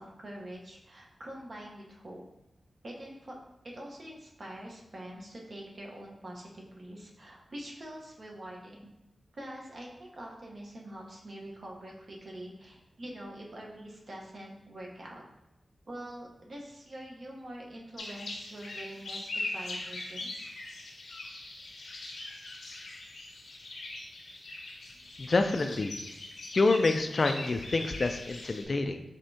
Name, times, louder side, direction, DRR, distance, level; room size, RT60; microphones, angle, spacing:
voice 1, 0.0-2.2 2.8-3.3 3.6-8.9 9.3-15.2 15.9-20.5, right 1 dB, 55° right, -2 dB, 0.9 m, -45 dB
sound 1, 18.0-28.6, left 2 dB, 85° left, 0.8 m, -41 dB
voice 2, 25.2-26.0 26.5-29.0, left 3 dB, 50° left, 7 dB, 0.3 m, -27 dB
5.0 x 3.4 x 2.7 m, 0.90 s
wide cardioid pair, 85°, 0 cm